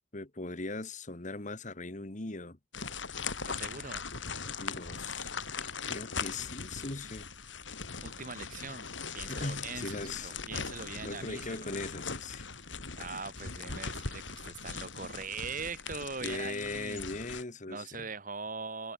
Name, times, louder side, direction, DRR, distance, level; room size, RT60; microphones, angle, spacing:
voice 1, 0.1-2.6 4.4-5.3 5.6-7.3 9.3-10.4 11.1-12.5 16.2-18.1, left 2 dB, 40° left, 1.7 m, -39 dB
sound 1, 2.7-17.4, left 5 dB, 80° left, 4.2 m, -40 dB
voice 2, 3.5-4.0 8.0-8.9 9.1-11.7 13.0-17.0 17.7-18.9, right 4 dB, 45° right, 2.9 m, -41 dB
head